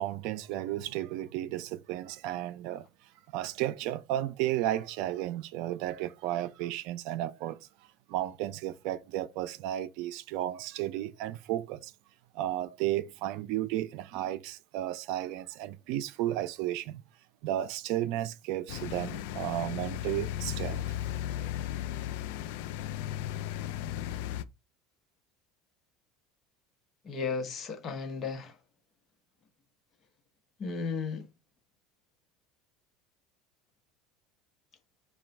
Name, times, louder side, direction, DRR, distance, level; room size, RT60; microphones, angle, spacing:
voice 1, 0.0-2.9 3.3-7.6 8.1-11.9 12.3-17.0 17.4-20.9 21.4-21.5, right 13 dB, 65° right, 0.4 m, -33 dB
sound 1, 18.7-24.4, left 12 dB, 75° left, 0.4 m, -35 dB
voice 2, 27.0-28.6 30.6-31.3, left 5 dB, 35° left, 1.0 m, -34 dB
4.9 x 2.3 x 4.4 m
supercardioid pair, 125°, 0 cm